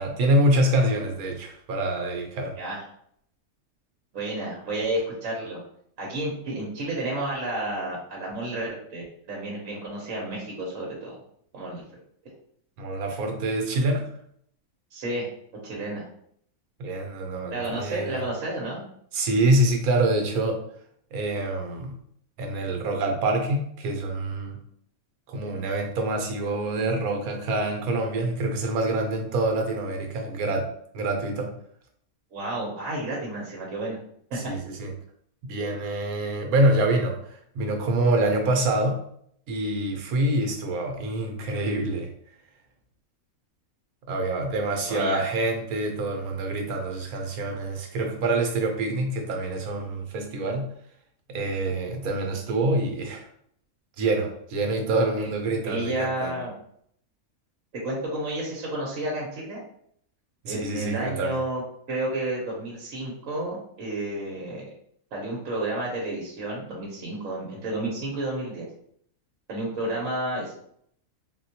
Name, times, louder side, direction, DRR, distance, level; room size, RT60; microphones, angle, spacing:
voice 1, 0.0-2.5 12.8-14.0 16.8-18.2 19.1-20.6 21.1-22.0 22.4-24.6 25.3-30.7 30.9-31.5 34.5-34.9 35.4-37.2 37.5-39.0 39.5-42.1 44.1-50.7 51.3-53.2 54.0-55.9 56.2-56.4 60.4-61.4, right 2 dB, 85° right, 3 dB, 1.2 m, -26 dB
voice 2, 4.1-5.6 6.0-11.1 11.5-11.8 14.9-15.3 15.6-16.1 17.5-18.8 32.3-34.0 34.3-34.4 44.8-45.2 55.2-55.3 55.6-56.5 57.7-59.6 60.5-61.6 61.9-64.7 65.1-68.7 69.5-70.5, right 1 dB, 70° right, -3 dB, 1.2 m, -31 dB
3.9 x 2.2 x 2.8 m, 0.67 s
omnidirectional pair, 1.5 m